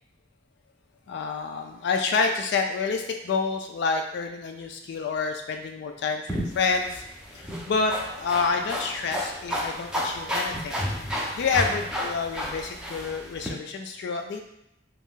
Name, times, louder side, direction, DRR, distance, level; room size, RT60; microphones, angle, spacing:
voice 1, 1.1-7.0 7.3-14.4, left 4 dB, 60° left, 4 dB, 0.3 m, -28 dB
sound 1, 6.3-13.5, equal, 5° right, 0.5 m, -32 dB
2.6 x 2.3 x 3.6 m, 0.83 s
head